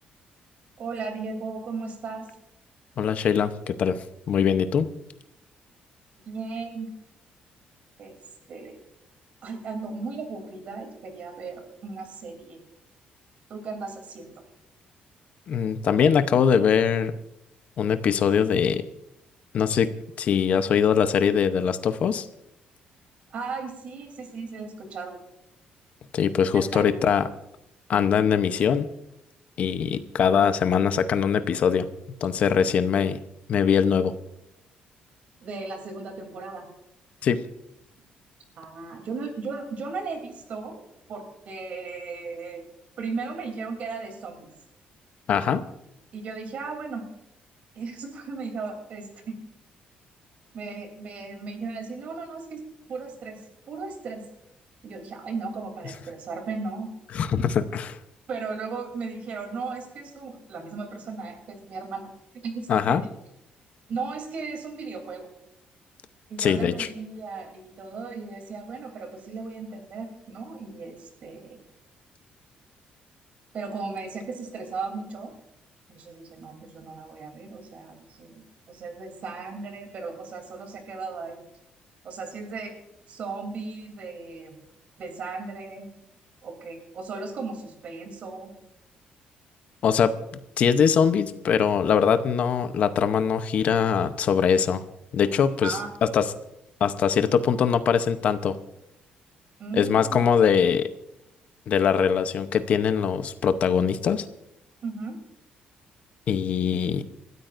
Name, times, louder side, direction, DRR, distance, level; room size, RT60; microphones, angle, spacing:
voice 1, 0.8-2.3 6.2-6.9 8.0-8.2 8.5-8.8 9.4-12.6 13.5-14.4 23.3-25.2 26.4-26.9 35.4-36.7 38.5-40.8 41.1-42.6 43.0-44.5 46.1-47.1 47.7-49.4 50.5-52.6 52.9-54.2 54.8-56.9 58.3-63.0 63.9-65.3 66.3-71.6 73.5-75.3 75.9-81.4 82.0-82.8 83.1-84.5 85.0-85.9 86.4-88.5 95.6-95.9 99.6-100.2 104.8-105.2, right 4 dB, 50° right, 4 dB, 3.1 m, -36 dB
voice 2, 3.0-4.0 4.3-4.9 15.5-17.2 17.8-18.8 19.5-22.3 26.1-27.3 27.9-28.9 29.6-31.9 32.2-33.2 33.5-34.1 37.2-37.4 45.3-45.6 57.1-58.0 62.7-63.0 66.4-66.9 89.8-90.1 90.6-94.8 95.1-96.3 96.8-98.6 99.8-100.9 101.7-104.2 106.3-107.0, left 7 dB, 45° left, 10 dB, 0.8 m, -22 dB
30.0 x 13.5 x 2.6 m, 0.85 s
cardioid pair, 175°, 3 cm